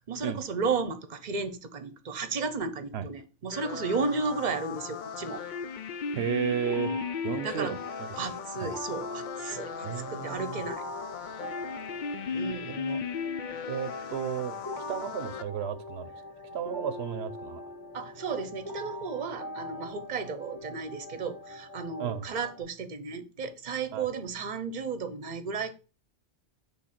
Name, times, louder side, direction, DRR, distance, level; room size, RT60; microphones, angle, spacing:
voice 1, 0.1-5.4 7.4-7.8 8.2-10.8 12.3-12.8 17.9-25.7, right 4 dB, 50° right, 0.9 m, -33 dB
sound 1, 3.5-15.4, left 6 dB, 55° left, 0.6 m, -37 dB
voice 2, 6.1-6.9 7.2-8.1 8.6-8.7 9.8-10.6 12.7-13.0 13.7-16.1 16.5-17.6 22.0-22.3 23.9-24.1, right 8 dB, 80° right, 0.8 m, -33 dB
sound 2, 6.6-22.6, left 1 dB, 20° left, 1.6 m, -43 dB
6.2 x 3.5 x 5.9 m
omnidirectional pair, 1.1 m